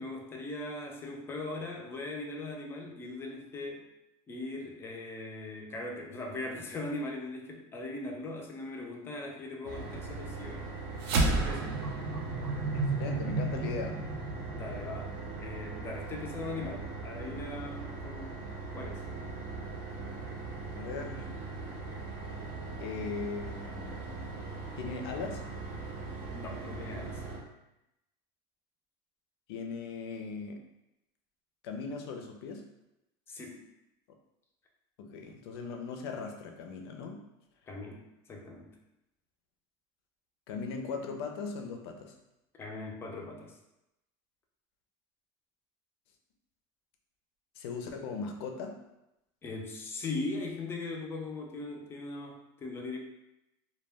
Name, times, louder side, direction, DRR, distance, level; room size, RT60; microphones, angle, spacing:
voice 1, 0.0-3.9 4.3-10.7 11.3-11.8 14.5-18.4 18.7-19.1 26.3-27.2 33.3-33.6 37.7-38.0 38.3-38.7 42.6-43.5 49.4-53.0, left 2 dB, 20° left, 0 dB, 0.4 m, -40 dB
sound 1, 9.6-27.4, right 3 dB, 50° right, 0.7 m, -40 dB
sound 2, 11.0-15.6, right 3 dB, 90° right, 0.5 m, -31 dB
voice 2, 12.7-13.9 20.7-21.4 22.8-23.9 24.8-25.5 29.5-30.6 31.6-32.6 35.0-37.2 40.5-42.1 47.6-48.8, left 4 dB, 75° left, 4 dB, 0.5 m, -39 dB
2.2 x 2.1 x 3.3 m, 0.90 s
supercardioid pair, 150°, 13 cm